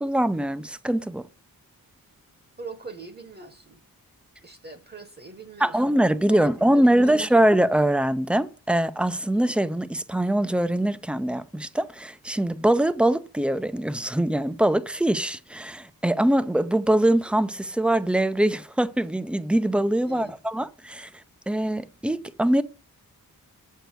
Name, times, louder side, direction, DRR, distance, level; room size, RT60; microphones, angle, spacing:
voice 1, 0.0-1.3 5.6-21.1 21.5-22.6, right 1 dB, 5° right, 0.4 m, -23 dB
voice 2, 2.6-3.8 4.4-6.0 6.3-7.5 20.0-20.4, right 4 dB, 25° right, 1.0 m, -42 dB
7.8 x 4.6 x 6.6 m
wide cardioid pair, 145°, 36 cm